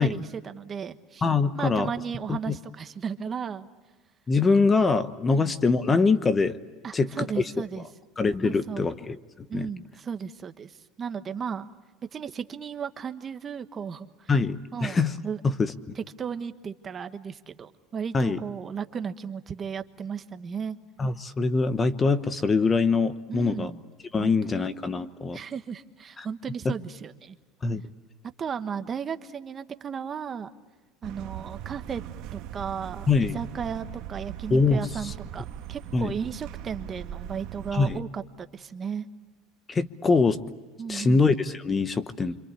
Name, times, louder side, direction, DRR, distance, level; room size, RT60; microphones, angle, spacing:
voice 1, 0.0-1.2 1.5-3.7 5.3-5.5 6.8-7.8 8.4-8.9 9.5-11.7 12.1-14.3 14.7-15.4 15.9-20.8 23.3-23.8 24.2-24.6 25.3-27.4 28.4-30.5 31.0-32.0 32.3-39.1 40.8-41.2, right 7 dB, 30° right, 9 dB, 1.2 m, -35 dB
voice 2, 1.2-1.9 2.3-2.5 4.3-6.6 6.9-7.4 8.2-9.2 9.5-9.7 14.3-15.1 15.4-15.7 18.1-18.4 21.0-23.7 24.1-25.4 26.2-26.3 26.6-26.7 27.6-27.8 33.1-33.4 34.5-35.1 35.9-36.1 37.7-38.0 39.7-40.4 40.9-42.4, left 4 dB, 20° left, 13 dB, 1.0 m, -23 dB
sound 1, 31.0-38.0, right 11 dB, 60° right, 1.5 m, -39 dB
26.5 x 26.5 x 8.3 m, 1.3 s
supercardioid pair, 130°, 0 cm